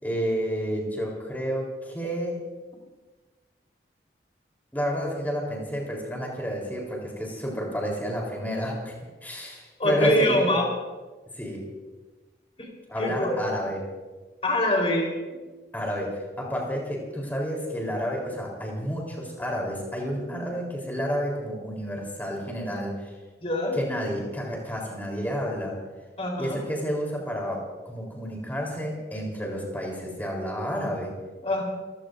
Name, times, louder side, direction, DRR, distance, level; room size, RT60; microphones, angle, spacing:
voice 1, 0.0-2.5 4.7-8.9 9.2-10.5 11.4-11.7 12.9-13.8 15.7-16.1 16.4-23.1 23.7-25.7 26.3-31.1, equal, 10° left, -1 dB, 3.8 m, -30 dB
voice 2, 9.8-10.7 12.6-12.7 13.0-13.4 14.4-15.4 23.4-23.8 26.2-26.6 31.4-31.6, left 1 dB, 35° left, 0 dB, 4.1 m, -24 dB
29.5 x 16.0 x 2.6 m, 1.3 s
head